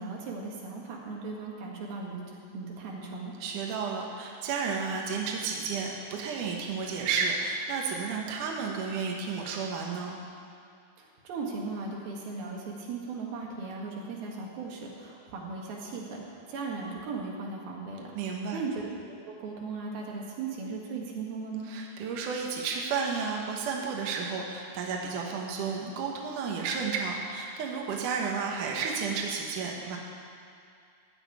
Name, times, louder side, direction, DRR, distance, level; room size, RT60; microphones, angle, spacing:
voice 1, 0.0-3.3 11.3-18.1 18.5-21.7, right 4 dB, 85° right, -2 dB, 3.7 m, -37 dB
voice 2, 3.4-10.2 18.1-18.6 21.6-30.0, right 5 dB, 65° right, -1 dB, 2.6 m, -32 dB
14.5 x 6.7 x 9.3 m, 2.4 s
omnidirectional pair, 4.2 m